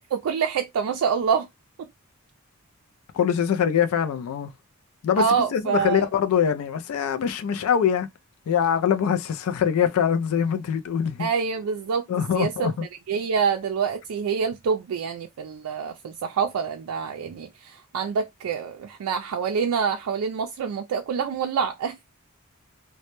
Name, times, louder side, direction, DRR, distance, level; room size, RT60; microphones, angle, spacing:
voice 1, 0.1-1.5 1.8-1.9 5.2-6.0 11.2-12.1 12.3-12.7 13.1-22.0, right 6 dB, 80° right, 0.3 m, -26 dB
voice 2, 3.1-4.5 5.0-5.3 5.5-8.1 8.5-11.3 12.1-12.8, left 8 dB, 80° left, 0.3 m, -23 dB
2.1 x 2.1 x 2.9 m
head